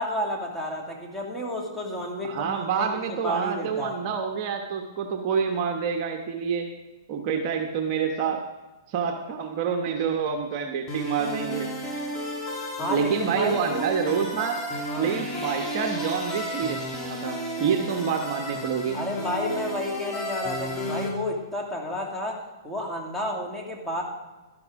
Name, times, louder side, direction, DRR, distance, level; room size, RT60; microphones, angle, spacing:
voice 1, 0.0-4.0 12.7-13.1 13.3-13.9 14.9-15.1 18.9-24.0, left 1 dB, ahead, -2 dB, 2.3 m, -31 dB
voice 2, 2.2-6.7 7.1-8.4 8.9-11.7 12.9-14.6 15.0-16.8 17.1-19.0, right 6 dB, 40° right, 3 dB, 1.1 m, -27 dB
sound 1, 10.9-21.1, equal, 20° left, 3.1 m, -32 dB
12.5 x 11.5 x 3.7 m, 1.2 s
hypercardioid pair, 130°, 2 cm